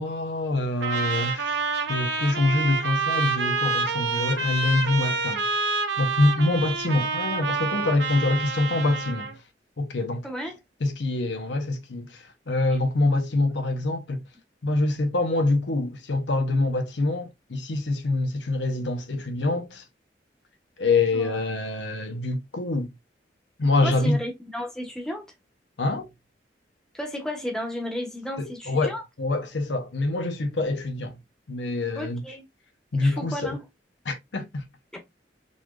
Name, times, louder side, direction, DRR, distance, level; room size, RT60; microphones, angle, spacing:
voice 1, 0.0-5.5 6.0-9.3 9.8-10.3 10.8-14.2 14.6-19.8 20.8-22.9 23.6-24.2 25.8-26.1 28.4-31.2 31.5-32.2 32.9-33.6 34.1-34.6, left 2 dB, 85° left, 0.8 m, -25 dB
Trumpet, 0.8-9.4, right 4 dB, 85° right, 0.8 m, -28 dB
voice 2, 10.2-10.6 13.1-13.2 21.1-21.3 23.8-25.2 26.9-29.0 32.0-32.4 32.9-33.6, equal, 5° left, 1.0 m, -33 dB
4.0 x 3.1 x 2.3 m
head